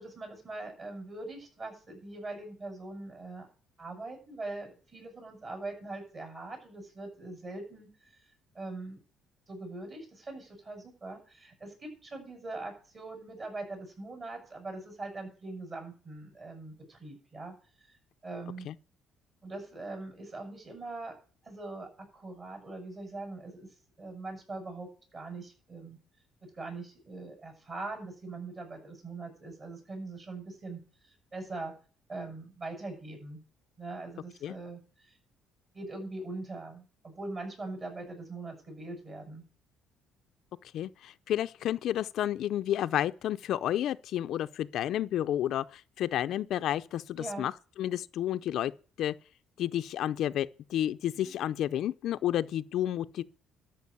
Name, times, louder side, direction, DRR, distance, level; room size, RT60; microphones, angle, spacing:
voice 1, 0.0-3.5 3.8-8.2 8.5-9.0 9.5-17.5 17.8-17.9 18.2-18.7 19.4-21.2 21.4-23.7 24.0-26.0 26.4-30.8 31.1-31.7 32.1-33.4 33.8-35.2 35.7-39.4 46.2-46.4 47.2-47.5 51.1-51.3, right 2 dB, 35° right, 7.5 m, -42 dB
voice 2, 40.7-47.5 47.8-48.7 49.0-49.1 49.6-53.2, left 11 dB, 65° left, 0.5 m, -31 dB
13.0 x 6.1 x 8.3 m
cardioid pair, 125°, 0 cm